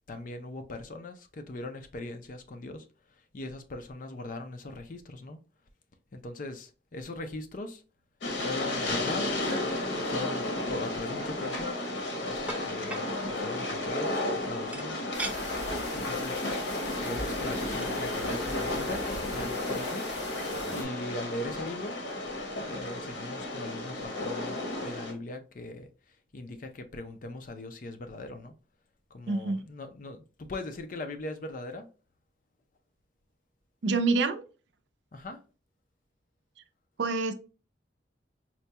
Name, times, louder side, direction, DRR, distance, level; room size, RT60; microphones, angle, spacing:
voice 1, 0.1-5.4 6.1-7.8 8.4-9.6 9.9-11.7 12.2-15.1 15.9-16.7 17.0-20.1 20.7-22.0 22.5-28.5 29.1-31.9 35.1-35.4, left 2 dB, 45° left, 0.5 m, -40 dB
Train, 8.2-25.1, left 2 dB, 85° left, 0.9 m, -33 dB
sound 1, 11.5-11.7 12.5-13.1 14.7-15.4 15.9-16.0 16.3-16.6 17.5-17.6 17.8-18.0, right 2 dB, 10° right, 0.5 m, -38 dB
sound 2, 15.1-20.8, left 1 dB, 70° left, 1.3 m, -38 dB
voice 2, 29.3-29.6 33.8-34.4 37.0-37.3, right 3 dB, 80° right, 0.5 m, -26 dB
4.3 x 2.2 x 2.8 m
head